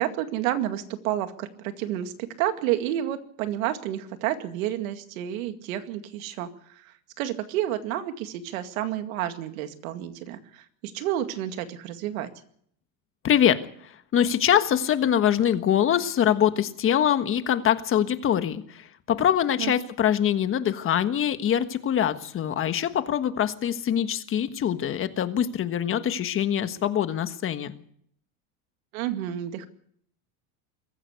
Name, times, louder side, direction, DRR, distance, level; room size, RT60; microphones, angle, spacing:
voice 1, 0.0-12.3 19.6-19.7 28.9-29.7, right 12 dB, 85° right, 8 dB, 2.3 m, -30 dB
voice 2, 13.2-13.6 14.1-27.7, left 9 dB, 30° left, 10 dB, 1.5 m, -24 dB
22.5 x 14.5 x 8.2 m, 0.67 s
supercardioid pair, 140°, 40 cm